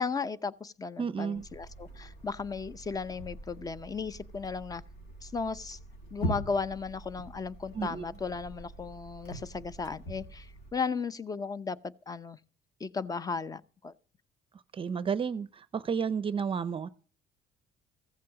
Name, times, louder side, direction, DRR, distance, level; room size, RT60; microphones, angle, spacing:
voice 1, 0.0-4.8 5.2-5.8 6.1-12.4 12.8-13.9, left 5 dB, 20° left, 0.7 m, -35 dB
voice 2, 1.0-1.5 7.7-8.0 14.7-16.9, right 6 dB, 30° right, 0.6 m, -32 dB
sound 1, 1.3-10.7, equal, 80° left, 5.0 m, -43 dB
15.5 x 7.5 x 7.3 m
cardioid pair, 110°, 17 cm